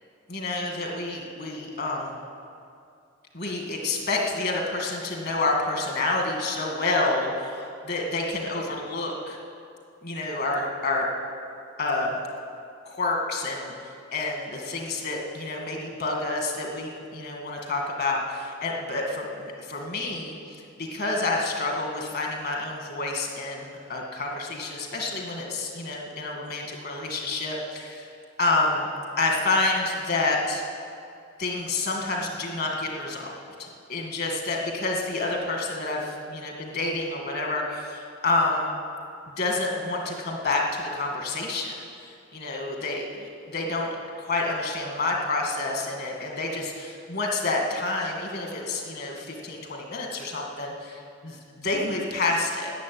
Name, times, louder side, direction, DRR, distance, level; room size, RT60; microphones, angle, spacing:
voice 1, 0.3-2.2 3.3-9.4 10.0-11.1 11.8-12.1 12.9-13.7 14.1-28.1 28.4-28.9 29.2-30.6 31.4-33.3 33.6-38.7 39.3-52.7, left 2 dB, 55° left, 1 dB, 2.1 m, -28 dB
12.5 x 7.6 x 9.4 m, 2.4 s
head